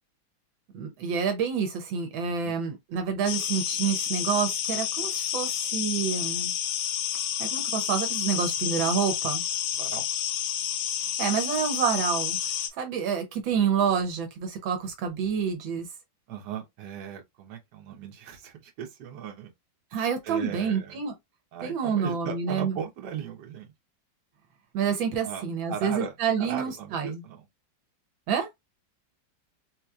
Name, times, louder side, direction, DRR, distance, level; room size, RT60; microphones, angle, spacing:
voice 1, 0.7-6.5 7.4-9.4 11.2-12.4 12.8-15.9 19.9-21.1 21.6-22.8 24.7-27.2 28.3-28.5, right 7 dB, 80° right, 1.6 m, -28 dB
voice 2, 2.3-2.6 9.8-10.0 16.3-19.5 20.2-21.0 21.5-23.7 25.2-27.5, right 8 dB, 65° right, 1.5 m, -38 dB
sound 1, 3.3-12.7, left 10 dB, 80° left, 1.3 m, -30 dB
4.0 x 3.0 x 2.3 m
omnidirectional pair, 2.1 m